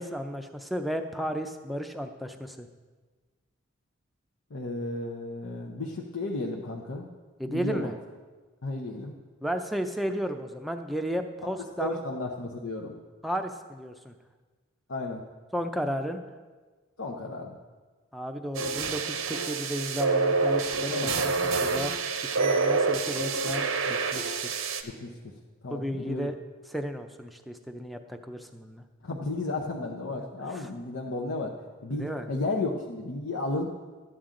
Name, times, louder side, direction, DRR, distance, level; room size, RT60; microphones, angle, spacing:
voice 1, 0.0-2.7 7.4-7.9 9.4-12.0 13.2-14.1 15.5-16.2 18.1-21.9 22.3-24.6 25.7-26.3 26.7-28.8 30.5-30.7 32.0-32.3, equal, ahead, 6 dB, 0.5 m, -33 dB
voice 2, 4.5-7.1 7.5-7.9 8.6-9.2 11.8-12.9 14.9-15.2 17.0-17.6 20.9-21.1 24.8-25.2 25.6-26.3 29.0-31.5 31.8-33.7, left 2 dB, 80° left, -2 dB, 0.8 m, -33 dB
sound 1, 18.5-24.8, right 4 dB, 85° right, 0.8 m, -27 dB
12.5 x 8.8 x 3.8 m, 1.3 s
head